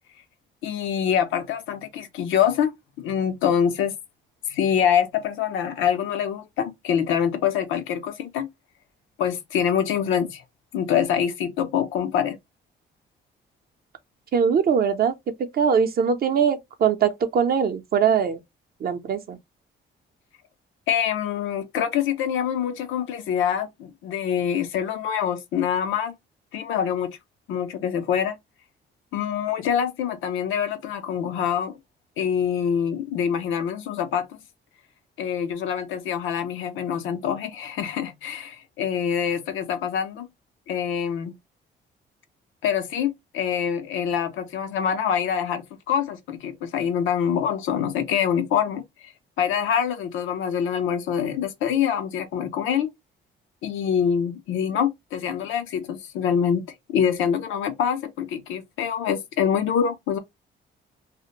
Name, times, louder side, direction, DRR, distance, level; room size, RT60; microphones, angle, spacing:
voice 1, 0.6-3.9 4.5-8.5 9.2-10.4 10.7-12.4 20.9-26.1 26.5-27.2 27.5-28.3 29.1-31.7 32.2-34.3 35.2-40.3 40.7-41.4 42.6-48.8 49.4-52.9 53.6-56.6 56.9-60.2, left 8 dB, 85° left, 0.5 m, -25 dB
voice 2, 14.3-15.1 15.4-18.4 18.8-19.4, right 7 dB, 50° right, 0.6 m, -21 dB
2.4 x 2.1 x 2.8 m
cardioid pair, 90°, 20 cm